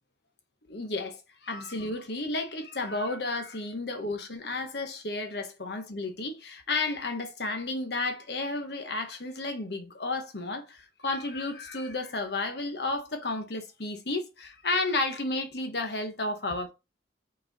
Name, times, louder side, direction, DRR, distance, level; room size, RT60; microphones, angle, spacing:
voice 1, 0.6-16.7, left 2 dB, 65° left, 1.2 m, -32 dB
5.4 x 4.2 x 4.2 m
head